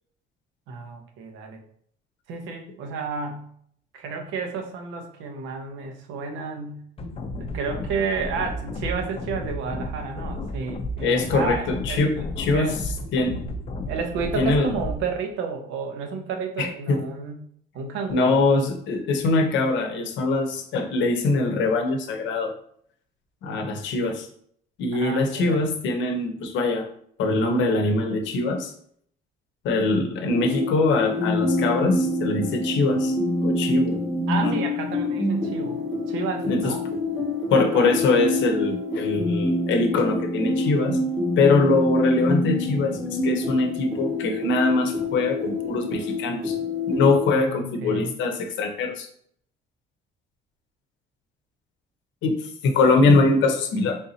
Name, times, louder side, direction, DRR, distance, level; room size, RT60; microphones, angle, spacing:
voice 1, 0.7-1.6 2.3-3.5 3.9-6.8 7.4-12.3 12.5-12.8 13.9-17.4 17.7-18.5 25.0-25.6 34.3-35.8 36.1-36.8 37.5-37.9 47.3-48.1, right 5 dB, 90° right, 4 dB, 0.7 m, -31 dB
sound 1, 7.0-15.0, left 1 dB, 30° left, 0.5 m, -33 dB
voice 2, 11.0-12.8 13.1-13.4 14.4-14.7 16.6-17.0 18.1-22.5 23.4-24.3 24.8-26.9 27.2-28.7 29.6-33.2 33.4-34.0 34.4-34.5 36.5-36.7 37.5-41.0 41.4-46.6 46.9-49.1 52.2-52.4 52.6-54.0, left 3 dB, 70° left, 5 dB, 0.7 m, -22 dB
sound 2, 30.3-47.2, left 2 dB, ahead, 0.8 m, -26 dB
3.6 x 2.7 x 2.7 m, 0.64 s
cardioid pair, 105°, 20 cm